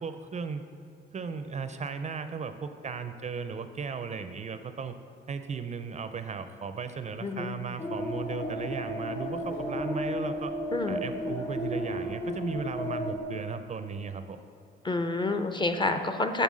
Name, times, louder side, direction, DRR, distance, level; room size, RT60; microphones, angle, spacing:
voice 1, 0.0-0.6 1.1-5.0 5.3-10.5 10.9-14.4, right 5 dB, 35° right, 9 dB, 0.4 m, -36 dB
voice 2, 7.2-7.5 10.7-11.0 14.8-16.4, left 2 dB, 25° left, 7 dB, 0.6 m, -28 dB
sound 1, 7.8-13.2, left 1 dB, 85° left, 1.8 m, -33 dB
6.7 x 5.4 x 6.2 m, 2.4 s
cardioid pair, 90°, 20 cm